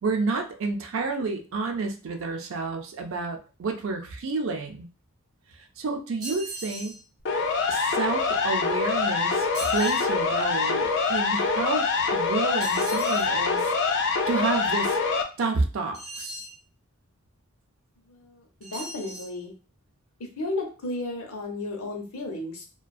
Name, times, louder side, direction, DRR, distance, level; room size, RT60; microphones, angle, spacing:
voice 1, 0.0-4.9 5.5-7.0 7.7-11.9 12.1-13.7 14.3-15.0 15.4-16.4, right 3 dB, 65° right, 4 dB, 0.4 m, -30 dB
sound 1, 6.2-7.0 9.5-10.1 12.6-13.3 15.9-16.6 18.6-19.3, right 1 dB, 35° right, 0.8 m, -39 dB
Siren, 7.3-15.2, left 4 dB, 55° left, 0.4 m, -25 dB
voice 2, 18.1-19.5 20.2-22.6, left 2 dB, 85° left, 2 dB, 0.7 m, -34 dB
2.5 x 2.2 x 2.3 m, 0.35 s
head